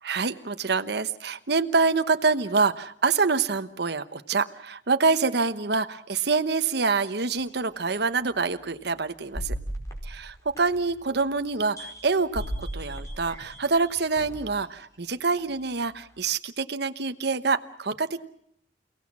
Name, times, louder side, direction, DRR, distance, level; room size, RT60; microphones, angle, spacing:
voice 1, 0.0-9.5 10.0-18.2, right 4 dB, 65° right, 9 dB, 1.0 m, -26 dB
sound 1, 7.4-7.5 8.2-8.3 9.3-11.0 11.5-14.6 15.4-15.5, equal, 20° left, 4.5 m, -36 dB
29.5 x 17.5 x 7.4 m, 0.70 s
head